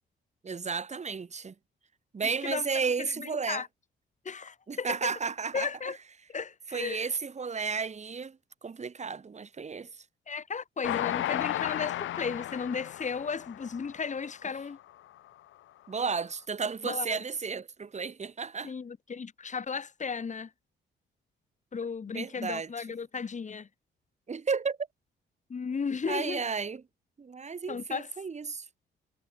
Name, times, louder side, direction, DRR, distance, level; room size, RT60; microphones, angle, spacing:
voice 1, 0.4-1.5 2.1-3.6 4.7-5.7 6.7-9.9 15.9-18.7 22.1-22.7 24.3-24.8 26.1-26.8 27.2-28.6, right 5 dB, 35° right, 4.1 m, -33 dB
voice 2, 2.4-3.7 4.2-5.1 5.5-6.0 6.3-7.1 10.3-14.8 16.8-17.2 18.6-20.5 21.7-23.7 25.5-26.4 27.7-28.1, left 5 dB, 35° left, 4.6 m, -35 dB
Train, 10.8-14.3 14.8-14.9 15.2-15.3, left 13 dB, 80° left, 6.0 m, -34 dB
cardioid pair, 90°, 20 cm